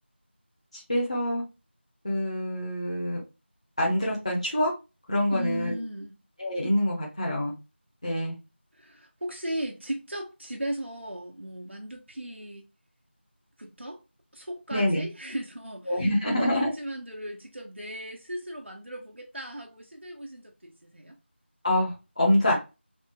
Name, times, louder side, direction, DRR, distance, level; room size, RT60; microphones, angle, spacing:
voice 1, 0.7-1.4 2.0-3.2 3.8-4.7 5.1-5.8 6.4-7.5 8.0-8.4 14.7-15.1 15.9-16.7 21.6-22.5, left 1 dB, 35° left, 0.9 m, -26 dB
voice 2, 5.3-6.2 8.7-12.6 13.6-14.0 14.3-21.2, right 1 dB, 75° right, 1.0 m, -36 dB
3.5 x 2.3 x 4.0 m
figure-of-eight pair, 175°, 6 cm